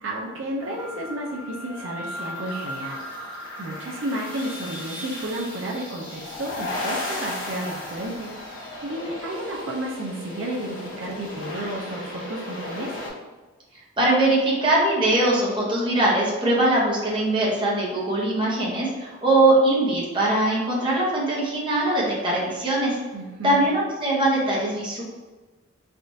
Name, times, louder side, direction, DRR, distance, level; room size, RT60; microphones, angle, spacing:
voice 1, 0.0-3.0 3.6-8.3 8.8-12.9 23.1-23.6, right 1 dB, 70° right, -2 dB, 0.5 m, -32 dB
sound 1, 0.6-13.1, left 1 dB, 70° left, 0.9 m, -35 dB
voice 2, 14.0-23.0 23.4-25.0, right 1 dB, 25° right, -5 dB, 0.8 m, -21 dB
3.5 x 2.4 x 2.6 m, 1.3 s
head